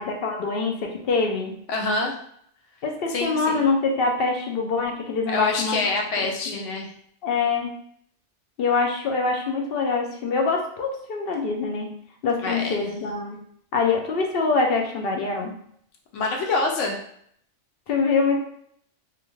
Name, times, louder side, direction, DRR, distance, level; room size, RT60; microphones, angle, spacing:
voice 1, 0.0-1.5 2.8-5.9 6.2-6.6 7.2-7.7 8.6-11.9 12.2-13.4 13.7-15.5 17.9-18.4, left 4 dB, 65° left, 2 dB, 0.7 m, -24 dB
voice 2, 1.7-2.2 3.1-3.6 5.3-6.9 12.4-12.9 16.1-17.0, left 3 dB, 85° left, 1 dB, 1.0 m, -26 dB
2.5 x 2.4 x 3.0 m, 0.67 s
omnidirectional pair, 1.2 m